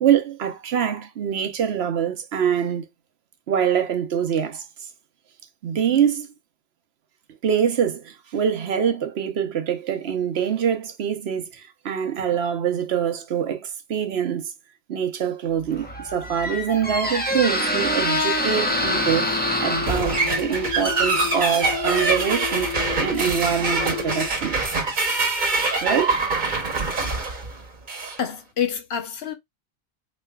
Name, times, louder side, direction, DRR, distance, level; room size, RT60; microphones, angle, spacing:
voice 1, 0.0-2.9 3.5-4.9 5.6-6.3 7.4-14.5 14.9-24.7 25.8-26.3, right 8 dB, 70° right, 1.0 m, -24 dB
Squeak, 15.6-24.4, left 1 dB, 10° left, 0.7 m, -27 dB
sound 1, 18.7-24.6, left 9 dB, 35° left, 0.9 m, -32 dB
sound 2, 19.9-28.2, right 3 dB, 45° right, 1.1 m, -24 dB
voice 2, 28.2-29.3, left 8 dB, 65° left, 1.0 m, -27 dB
4.1 x 3.1 x 2.2 m
omnidirectional pair, 1.1 m